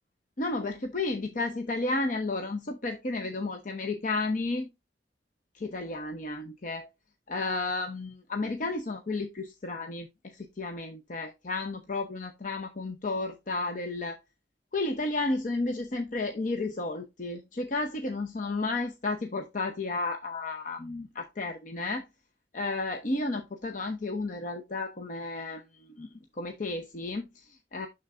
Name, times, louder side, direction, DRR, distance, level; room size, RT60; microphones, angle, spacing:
voice 1, 0.4-4.7 5.5-6.9 7.3-14.2 14.7-22.0 22.5-26.1 26.4-27.9, left 2 dB, 45° left, 0.8 m, -32 dB
11.5 x 3.9 x 2.5 m
head